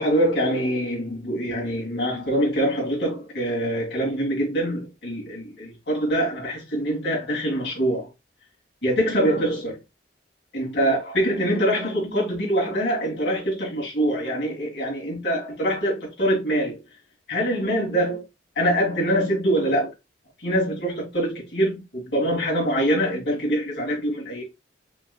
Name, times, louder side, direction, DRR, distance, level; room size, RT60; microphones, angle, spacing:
voice 1, 0.0-8.1 8.8-9.8 10.5-16.8 17.3-18.2 18.6-19.9 20.4-24.4, right 1 dB, 65° left, 2.1 m, -24 dB
5.3 x 2.3 x 2.2 m
head